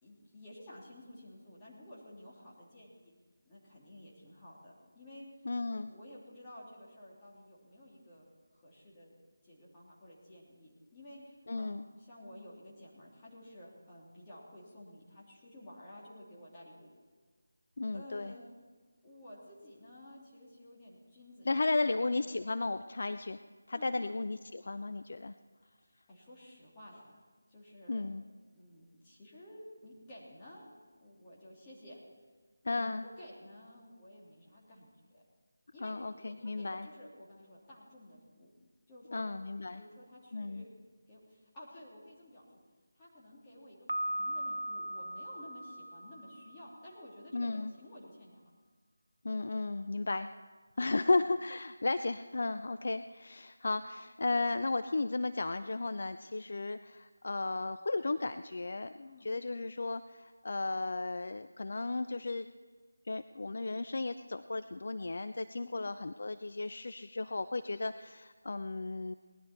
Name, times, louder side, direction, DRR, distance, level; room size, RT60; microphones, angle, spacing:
voice 1, 0.0-3.1 3.4-5.3 5.5-8.3 8.5-9.1 9.4-16.9 17.9-18.4 19.0-22.3 23.7-24.1 25.8-27.2 27.5-28.0 28.5-30.7 31.0-32.0 32.7-35.2 35.7-38.5 38.9-39.2 39.7-40.7 41.1-42.5 42.9-43.8 44.1-48.4 51.0-51.2 53.8-54.0 59.0-59.3 65.6-65.8, left 1 dB, 15° left, -7 dB, 3.0 m, -53 dB
voice 2, 5.4-5.9 11.5-11.9 17.8-18.3 21.5-23.4 23.7-25.3 27.9-28.2 32.6-33.0 35.8-36.9 39.1-39.8 40.3-40.6 47.3-47.7 49.2-50.3 50.8-62.5 63.1-69.1, left 3 dB, 50° left, 11 dB, 0.4 m, -34 dB
Piano, 43.9-46.8, right 1 dB, 70° right, 0.6 m, -38 dB
19.0 x 11.5 x 4.4 m, 1.5 s
figure-of-eight pair, 160°, 0 cm